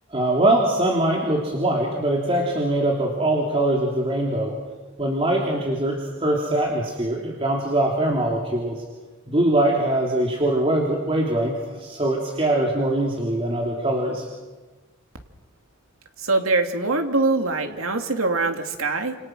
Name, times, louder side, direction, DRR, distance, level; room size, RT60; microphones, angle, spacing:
voice 1, 0.1-4.5 5.0-8.8 9.3-14.3, right 1 dB, 25° right, -1 dB, 3.2 m, -22 dB
voice 2, 16.2-19.2, right 3 dB, 80° right, 5 dB, 2.6 m, -23 dB
29.5 x 28.0 x 6.3 m, 1.2 s
head